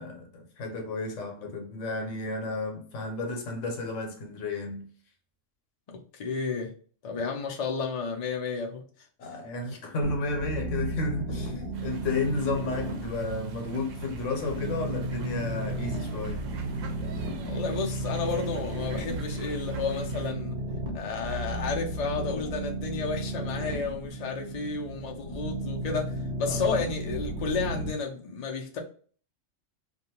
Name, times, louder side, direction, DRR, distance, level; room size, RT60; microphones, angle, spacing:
voice 1, 0.0-4.9 9.2-16.4 26.4-26.8, left 3 dB, 80° left, 1.1 m, -32 dB
voice 2, 6.1-6.7 7.0-8.8 17.5-20.6 20.9-26.1 26.4-28.8, left 5 dB, 50° left, 0.5 m, -32 dB
sound 1, 10.0-27.9, right 1 dB, 40° right, 0.8 m, -34 dB
sound 2, 11.7-20.3, right 5 dB, 80° right, 0.9 m, -42 dB
2.5 x 2.3 x 2.9 m
omnidirectional pair, 1.3 m